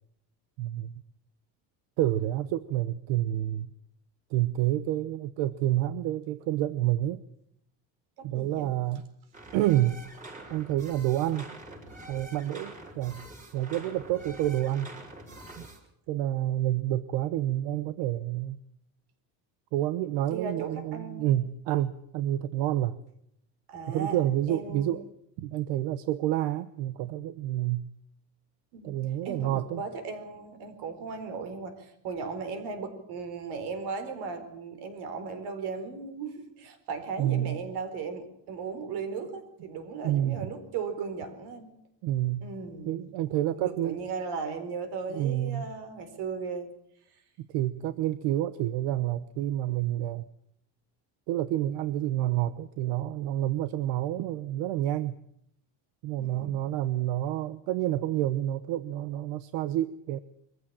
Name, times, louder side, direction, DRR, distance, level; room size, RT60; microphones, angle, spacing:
voice 1, 0.6-0.9 2.0-3.7 4.3-7.2 8.2-9.0 9.5-10.0 10.5-11.5 12.1-13.2 13.5-14.9 15.6-15.7 16.1-18.6 19.7-23.0 23.9-25.0 25.4-27.8 28.8-29.8 37.2-37.6 40.0-40.5 42.0-42.4 42.8-44.0 45.1-45.7 47.4-50.2 51.3-55.1 56.0-60.2, right 13 dB, 90° right, 13 dB, 1.0 m, -28 dB
voice 2, 8.2-8.7 20.3-21.3 23.7-24.2 24.5-25.0 28.7-29.0 29.2-41.7 42.4-43.0 43.3-46.7 56.2-56.6, right 5 dB, 70° right, 9 dB, 4.4 m, -37 dB
sound 1, 9.3-15.8, right 1 dB, 20° right, 5.5 m, -46 dB
23.5 x 15.0 x 8.7 m, 0.72 s
cardioid pair, 165°, 41 cm